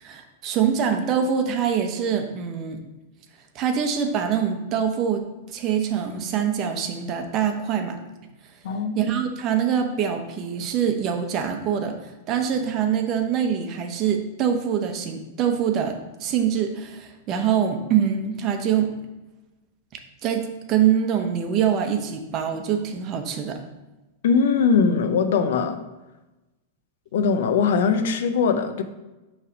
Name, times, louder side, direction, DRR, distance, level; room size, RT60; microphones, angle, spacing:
voice 1, 0.0-2.8 3.5-8.0 8.9-12.0 12.3-18.9 20.2-23.6, right 8 dB, 35° right, 5 dB, 0.8 m, -24 dB
voice 2, 8.6-9.1 24.2-25.8 27.1-28.8, left 5 dB, 75° left, 9 dB, 0.5 m, -21 dB
5.6 x 3.3 x 5.0 m, 1.1 s
hypercardioid pair, 130°, 0 cm